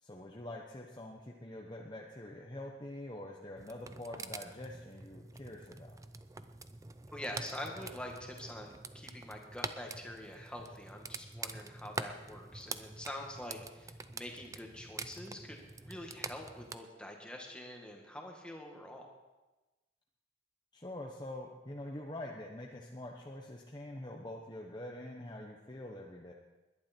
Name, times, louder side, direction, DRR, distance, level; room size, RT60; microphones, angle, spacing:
voice 1, 0.0-6.0 20.7-26.3, left 1 dB, 25° left, -1 dB, 1.0 m, -45 dB
sound 1, 3.6-16.8, right 3 dB, 15° right, 0.5 m, -46 dB
voice 2, 7.1-19.1, left 1 dB, 5° left, 1 dB, 1.9 m, -45 dB
20.5 x 11.0 x 4.5 m, 1.1 s
head